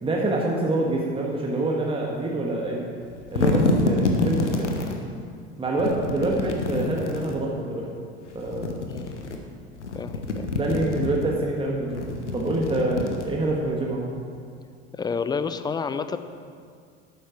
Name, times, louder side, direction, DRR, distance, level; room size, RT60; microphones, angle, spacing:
voice 1, 0.0-2.9 3.3-4.7 5.6-7.9 8.3-8.7 10.5-12.1 12.3-14.1, right 2 dB, 15° right, -2 dB, 1.5 m, -26 dB
sound 1, 3.0-5.0 5.8-7.4 8.3-9.4 9.7-11.3 11.8-13.6, left 3 dB, 80° left, 1.0 m, -27 dB
voice 2, 9.9-10.5 13.4-13.5 15.0-16.2, left 5 dB, 10° left, 10 dB, 0.4 m, -29 dB
11.5 x 8.9 x 4.5 m, 2.2 s
figure-of-eight pair, 70°, 35 cm